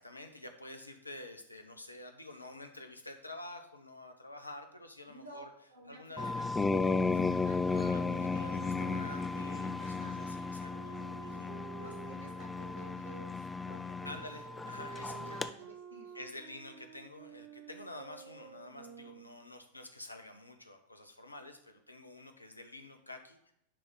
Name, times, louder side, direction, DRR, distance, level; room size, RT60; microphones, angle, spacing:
voice 1, 0.0-5.5 5.9-6.4 7.7-11.5 14.0-15.4 16.1-23.5, left 1 dB, 85° left, 6 dB, 0.9 m, -49 dB
voice 2, 5.1-5.4 5.7-6.5 6.9-7.6 9.8-10.2 11.8-14.2 15.1-16.2, right 1 dB, 75° right, 0 dB, 2.0 m, -53 dB
sound 1, 6.2-15.5, left 4 dB, 15° left, 0.4 m, -34 dB
sound 2, 7.5-13.3 14.0-19.5, right 8 dB, 45° right, 0.7 m, -51 dB
10.0 x 3.5 x 5.4 m, 0.76 s
figure-of-eight pair, 90°, 0 cm